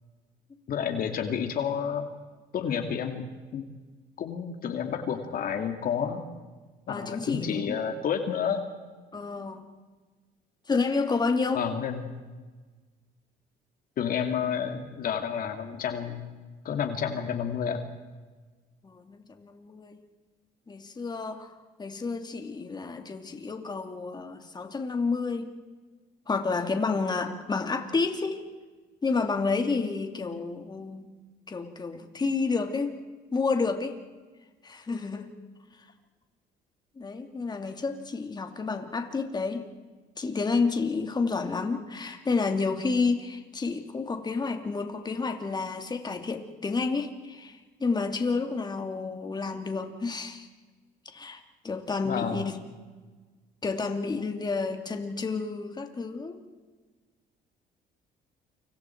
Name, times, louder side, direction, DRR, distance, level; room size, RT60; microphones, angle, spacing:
voice 1, 0.7-2.1 2.5-3.2 3.5-3.6 4.2-6.2 6.9-8.6 11.5-12.1 14.0-16.2 16.6-17.8 52.1-52.5, left 7 dB, 55° left, 6 dB, 2.4 m, -30 dB
voice 2, 6.9-7.8 9.1-9.7 10.7-11.6 18.8-20.0 20.7-21.5 21.8-25.5 26.3-28.5 29.0-31.1 31.5-33.0 33.3-34.0 34.6-35.3 37.0-39.7 40.2-50.5 51.0-52.8 53.6-56.4, left 4 dB, 25° left, 6 dB, 2.6 m, -30 dB
29.5 x 26.0 x 4.6 m, 1.4 s
cardioid pair, 110°, 17 cm